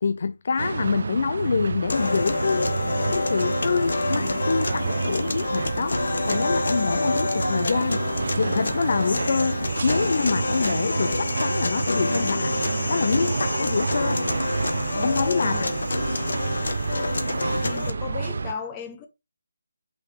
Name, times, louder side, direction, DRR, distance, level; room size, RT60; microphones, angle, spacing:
voice 1, 0.0-2.7 3.1-8.0 8.4-9.6 9.8-12.6 12.9-14.2 15.0-15.7, left 5 dB, 45° left, 0.4 m, -26 dB
sound 1, 0.6-18.5, right 4 dB, 55° right, 0.4 m, -29 dB
sound 2, 1.9-17.9, left 3 dB, 65° left, 1.1 m, -28 dB
voice 2, 14.9-15.8 17.6-19.1, left 6 dB, 15° left, 0.8 m, -35 dB
5.8 x 4.2 x 4.5 m
figure-of-eight pair, 170°, 0 cm